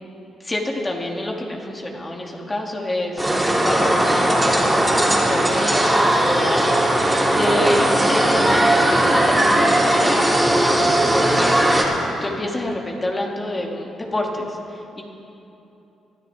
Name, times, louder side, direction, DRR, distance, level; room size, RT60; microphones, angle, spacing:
voice 1, 0.4-3.3 3.6-7.0 7.3-11.7 12.2-15.0, left 1 dB, 25° left, -1 dB, 2.7 m, -28 dB
sound 1, 3.2-11.8, right 1 dB, 10° right, 3.9 m, -18 dB
23.5 x 13.5 x 3.6 m, 2.9 s
supercardioid pair, 50°, 0 cm